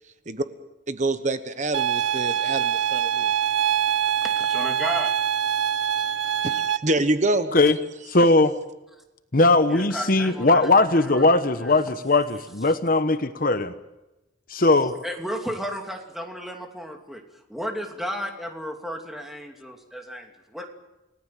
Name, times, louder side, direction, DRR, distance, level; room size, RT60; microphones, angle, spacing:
voice 1, 0.9-3.3 6.4-7.5, right 2 dB, 40° right, 10 dB, 1.2 m, -26 dB
sound 1, 1.7-6.8, right 9 dB, 80° right, 0.9 m, -24 dB
voice 2, 4.4-5.1 6.0-6.1 9.7-11.2 11.6-11.7 15.0-17.2 17.5-20.7, equal, ahead, 3 dB, 2.7 m, -33 dB
voice 3, 8.1-8.5 9.3-13.7 14.5-14.9, left 2 dB, 45° left, 11 dB, 1.1 m, -19 dB
29.5 x 18.5 x 7.5 m, 1.0 s
head